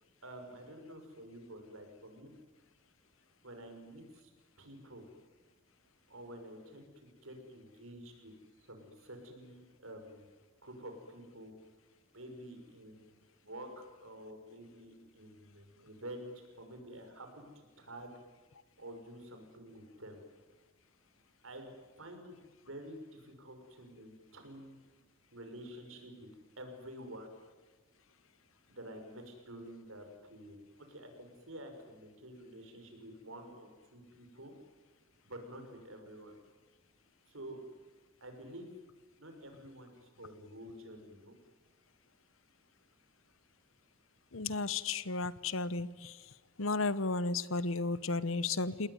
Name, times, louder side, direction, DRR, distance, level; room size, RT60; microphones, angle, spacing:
voice 1, 0.2-2.3 3.4-4.3 4.6-5.1 6.1-8.3 8.7-10.3 10.6-11.5 12.1-13.7 14.0-18.1 18.8-20.2 21.4-22.4 22.6-24.7 25.3-26.3 26.6-27.3 28.7-30.6 30.9-34.5 35.2-36.3 37.3-37.6 38.2-38.8 39.2-41.3, right 1 dB, 70° right, 5 dB, 5.8 m, -49 dB
voice 2, 44.3-46.2 46.6-48.9, left 3 dB, 65° left, 17 dB, 1.0 m, -33 dB
29.0 x 19.5 x 9.7 m, 1.2 s
head